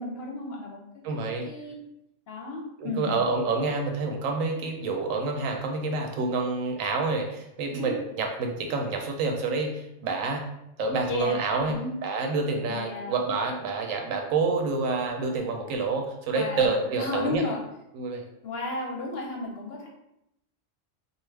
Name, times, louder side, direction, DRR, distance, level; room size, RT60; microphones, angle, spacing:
voice 1, 0.0-1.0 1.4-1.8 2.3-3.2 7.7-7.9 11.1-11.4 11.7-11.9 12.7-13.2 16.3-17.6 18.4-19.9, left 2 dB, 65° left, -1 dB, 0.7 m, -33 dB
voice 2, 1.0-1.5 2.8-10.4 10.8-11.8 12.0-17.4 17.9-18.2, right 3 dB, 85° right, 2 dB, 1.0 m, -28 dB
2.6 x 2.3 x 3.2 m, 0.83 s
omnidirectional pair, 1.3 m